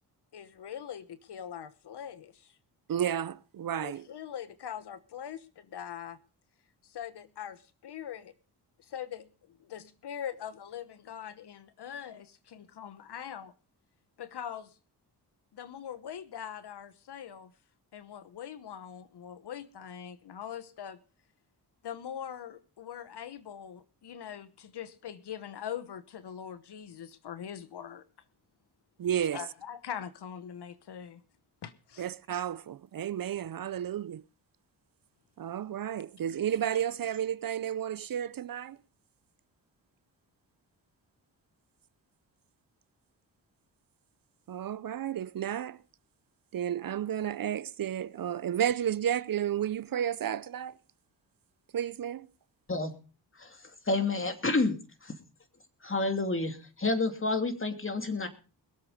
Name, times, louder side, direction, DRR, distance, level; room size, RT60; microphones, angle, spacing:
voice 1, 0.3-2.5 3.8-6.2 6.9-8.3 8.9-9.3 9.6-13.5 14.2-14.7 15.5-17.5 17.9-21.0 21.8-28.0 29.3-31.2 31.6-32.0, left 9 dB, 70° left, 1.1 m, -42 dB
voice 2, 2.9-4.1 29.0-29.5 32.0-34.2 35.4-38.8 44.5-45.8 46.5-50.8 51.7-52.3, right 10 dB, 55° right, 0.6 m, -32 dB
voice 3, 53.9-55.1 55.8-58.3, left 3 dB, 30° left, 2.8 m, -29 dB
21.5 x 7.9 x 5.0 m
cardioid pair, 60°, 42 cm